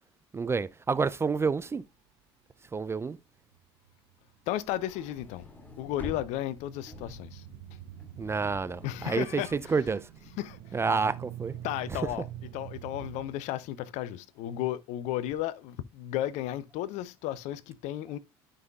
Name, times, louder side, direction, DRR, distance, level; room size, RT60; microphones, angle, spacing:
voice 1, 0.3-1.8 2.7-3.2 8.2-10.1 10.7-11.5, right 4 dB, 20° right, 0.4 m, -29 dB
sound 1, 3.5-4.6 6.6-13.3, right 10 dB, 65° right, 0.9 m, -45 dB
voice 2, 4.5-5.5 5.8-7.4 8.8-9.7 10.4-10.8 11.6-12.3 12.5-18.2, left 13 dB, 60° left, 0.7 m, -34 dB
sound 2, 4.6-10.9, left 2 dB, 10° left, 2.5 m, -48 dB
12.0 x 5.6 x 2.3 m
hypercardioid pair, 65°, 14 cm